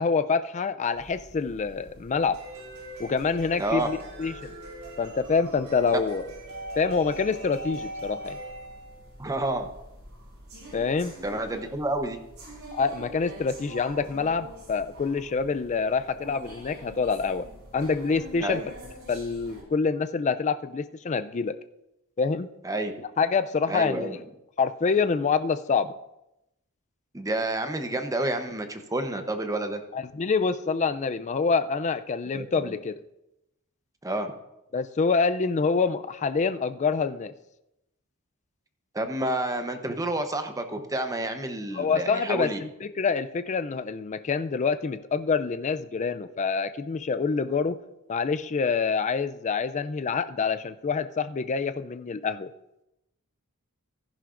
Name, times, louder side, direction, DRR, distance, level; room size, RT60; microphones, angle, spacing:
voice 1, 0.0-2.4 3.0-4.5 5.0-6.2 6.8-8.4 10.7-11.2 12.7-17.5 17.7-18.6 19.1-21.5 22.2-22.5 23.2-24.2 24.6-25.9 29.9-32.9 34.7-37.3 41.7-47.8 48.1-52.5, left 5 dB, 35° left, 11 dB, 0.4 m, -26 dB
sound 1, 0.9-19.6, right 1 dB, 70° right, 4.5 m, -43 dB
voice 2, 3.6-3.9 9.2-9.7 11.2-12.2 18.4-18.7 22.6-22.9 23.7-24.2 27.1-29.8 32.3-32.7 34.0-34.3 38.9-42.6, right 1 dB, 15° right, 7 dB, 0.8 m, -29 dB
15.0 x 10.5 x 2.5 m, 0.88 s
head